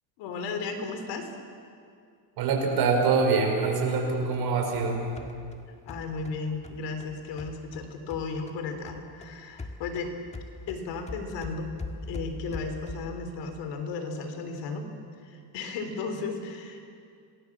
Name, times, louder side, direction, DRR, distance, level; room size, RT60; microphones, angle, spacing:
voice 1, 0.2-1.3 5.9-10.1 10.7-11.7 12.1-14.9 15.2-16.8, left 4 dB, 65° left, 6 dB, 3.7 m, -34 dB
voice 2, 2.4-5.1, right 4 dB, 55° right, 2 dB, 5.5 m, -25 dB
sound 1, 4.3-8.6 8.9-13.2, left 2 dB, 15° left, 1.7 m, -42 dB
27.0 x 20.0 x 7.3 m, 2.3 s
cardioid pair, 140°, 45 cm